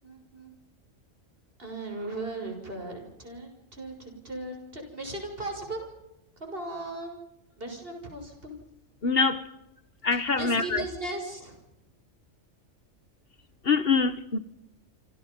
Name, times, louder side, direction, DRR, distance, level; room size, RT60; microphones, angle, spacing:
voice 1, 0.0-0.5 1.6-5.9 6.4-7.2 7.6-8.5 10.1-11.6, right 2 dB, 45° right, 6.9 m, -37 dB
voice 2, 9.0-9.4 10.0-10.8 13.7-14.4, left 4 dB, 45° left, 1.8 m, -24 dB
28.5 x 26.5 x 5.5 m
omnidirectional pair, 1.4 m